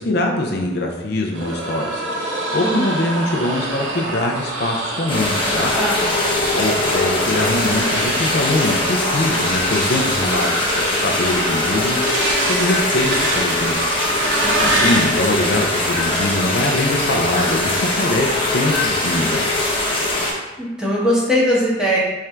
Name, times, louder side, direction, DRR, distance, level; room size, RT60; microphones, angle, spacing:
voice 1, 0.0-5.7 6.5-12.1 12.4-13.9 14.6-19.5, left 1 dB, 55° left, 0 dB, 0.5 m, -23 dB
sound 1, 1.3-15.2 15.9-16.5 16.9-17.3 17.6-18.3, right 2 dB, 80° right, 0.8 m, -26 dB
sound 2, 5.1-20.3, left 2 dB, 30° left, 0.9 m, -21 dB
voice 2, 5.7-6.1 14.4-14.9 20.6-22.0, equal, 5° right, -7 dB, 1.0 m, -20 dB
3.7 x 3.3 x 4.4 m, 1.1 s
head